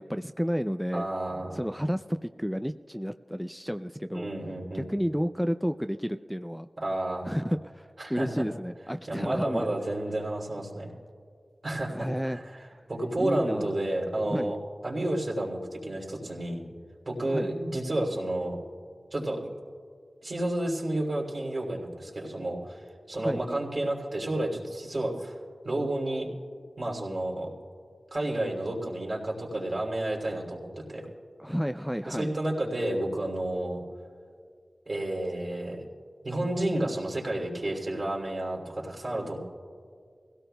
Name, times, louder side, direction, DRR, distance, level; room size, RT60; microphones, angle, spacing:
voice 1, 0.0-1.1 1.5-4.3 4.7-6.7 7.2-9.7 11.9-12.4 13.2-13.7 14.3-14.5 17.3-17.5 23.1-23.4 31.4-32.3, equal, ahead, 9 dB, 0.3 m, -31 dB
voice 2, 0.9-1.6 4.1-4.9 6.8-7.3 8.0-8.4 9.1-10.9 11.6-12.4 12.9-14.6 14.8-16.6 17.0-18.5 19.1-19.5 20.2-22.8 23.1-25.3 25.6-26.3 26.8-27.5 28.1-31.0 32.0-33.8 34.9-35.8 36.2-39.4, right 1 dB, 60° right, -2 dB, 3.2 m, -31 dB
24.5 x 16.5 x 2.3 m, 2.1 s
cardioid pair, 40°, 0 cm